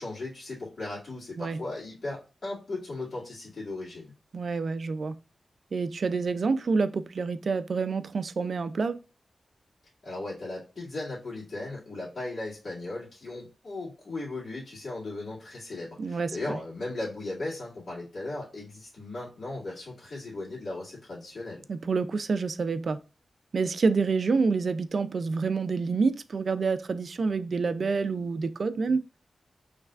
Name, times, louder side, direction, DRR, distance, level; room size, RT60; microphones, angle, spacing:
voice 1, 0.0-4.1 10.0-21.6, left 2 dB, 55° left, 2.2 m, -37 dB
voice 2, 4.3-5.1 5.7-9.0 16.0-16.6 21.7-23.0 23.5-29.1, right 4 dB, 60° right, 0.4 m, -27 dB
5.6 x 3.3 x 2.4 m
wide cardioid pair, 125°, 0 cm